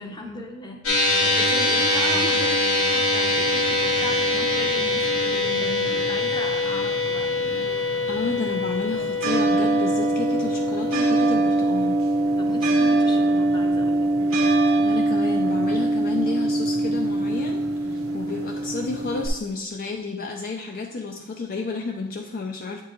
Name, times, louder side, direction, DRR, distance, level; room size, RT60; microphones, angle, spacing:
voice 1, 0.0-7.5 12.2-14.1, left 1 dB, 20° left, 3 dB, 0.7 m, -36 dB
sound 1, 0.8-13.4, left 2 dB, 70° left, 1.2 m, -24 dB
sound 2, 3.3-19.3, right 2 dB, 75° right, 0.9 m, -24 dB
voice 2, 8.1-12.0 14.8-22.8, left 3 dB, 45° left, 2 dB, 0.4 m, -31 dB
8.2 x 4.5 x 3.0 m, 1.0 s
head